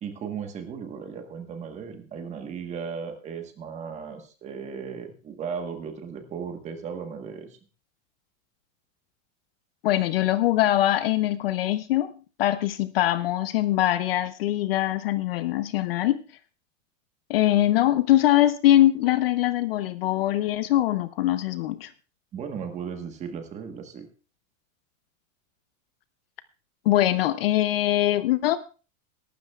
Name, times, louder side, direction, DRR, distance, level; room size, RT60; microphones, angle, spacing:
voice 1, 0.0-7.6 22.3-24.1, right 6 dB, 15° right, 6 dB, 1.2 m, -36 dB
voice 2, 9.8-12.1 12.4-16.2 17.3-21.9 26.9-28.6, left 14 dB, 45° left, 14 dB, 0.5 m, -22 dB
22.0 x 12.0 x 2.3 m, 0.35 s
supercardioid pair, 175°, 41 cm